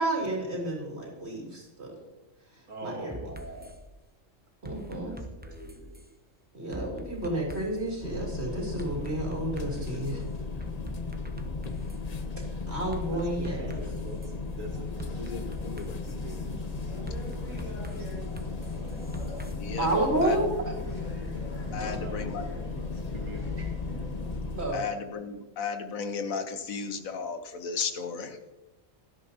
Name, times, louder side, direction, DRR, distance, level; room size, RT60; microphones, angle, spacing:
voice 1, 0.0-1.9 2.8-3.1 4.6-5.1 6.5-10.2 12.7-13.8 19.8-20.7 24.6-24.8, right 1 dB, 50° right, -2 dB, 3.8 m, -30 dB
voice 2, 2.7-3.7 5.0-6.0 13.1-18.8 21.6-23.6, right 1 dB, 70° right, 2 dB, 2.0 m, -45 dB
sound 1, 3.1-3.8 4.6-6.1 6.7-7.9 8.8-10.1 10.6-12.0 12.9-14.3 15.0-16.2 17.1-19.5, right 1 dB, 10° right, 0.6 m, -43 dB
sound 2, 8.0-24.6, left 4 dB, 35° left, 0.8 m, -35 dB
sound 3, 14.7-24.4, equal, 65° left, 3.3 m, -44 dB
voice 3, 19.5-19.9 20.2-20.5 21.7-22.5 24.7-28.4, left 5 dB, 85° left, 7 dB, 1.5 m, -34 dB
16.5 x 11.5 x 2.9 m, 1.1 s
omnidirectional pair, 1.4 m